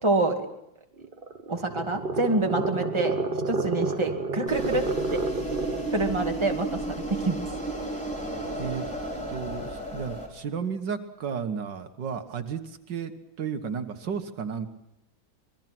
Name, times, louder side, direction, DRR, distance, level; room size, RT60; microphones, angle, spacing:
voice 1, 0.0-0.3 1.5-3.1 3.5-4.8 5.1-5.2 5.9-7.4, right 2 dB, 15° right, 3 dB, 2.2 m, -26 dB
sound 1, 1.0-6.0, right 3 dB, 30° right, 1.4 m, -30 dB
sound 2, 4.5-10.3, right 2 dB, 5° left, 4.8 m, -33 dB
voice 2, 9.3-14.7, right 6 dB, 75° right, 8 dB, 2.0 m, -33 dB
26.0 x 21.5 x 6.1 m, 0.84 s
omnidirectional pair, 1.9 m